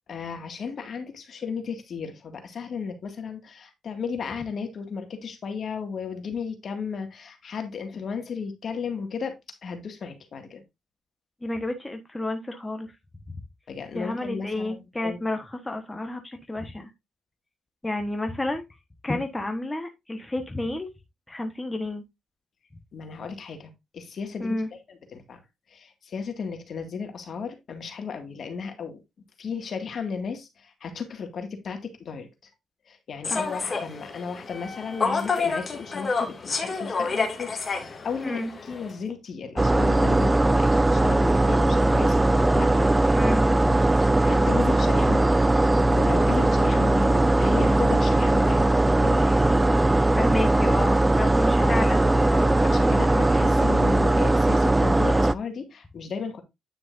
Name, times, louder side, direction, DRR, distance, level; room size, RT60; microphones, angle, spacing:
voice 1, 0.1-10.6 13.7-15.2 19.1-19.2 22.9-25.4 25.7-29.0 29.4-32.3 32.9-45.5 45.8-48.7 49.0-49.5 51.6-51.9 52.3-56.4, left 5 dB, 55° left, 2.1 m, -35 dB
voice 2, 11.4-12.9 13.3-13.4 13.9-16.9 17.8-18.6 19.0-20.9 21.3-22.0 24.4-24.7 33.3-33.5 38.2-38.5 43.1-43.5 50.2-52.0, left 2 dB, 15° left, 1.3 m, -30 dB
Human voice / Subway metro underground, 33.2-38.9, left 4 dB, 35° left, 2.4 m, -29 dB
sound 1, 39.6-55.3, right 2 dB, 15° right, 0.3 m, -20 dB
9.6 x 6.1 x 2.6 m
cardioid pair, 90°, 0 cm